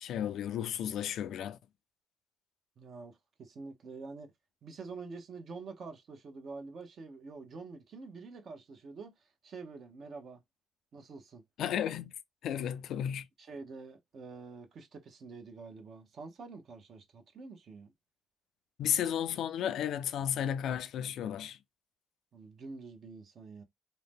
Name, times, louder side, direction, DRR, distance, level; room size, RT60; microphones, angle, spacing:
voice 1, 0.0-1.6 11.6-12.1 12.4-13.3 18.8-21.6, left 9 dB, 75° left, 0.3 m, -33 dB
voice 2, 2.8-4.3 4.6-9.1 9.4-10.4 10.9-11.4 13.4-17.9 22.3-23.6, right 4 dB, 55° right, 0.8 m, -47 dB
2.7 x 2.1 x 3.4 m
cardioid pair, 90°, 0 cm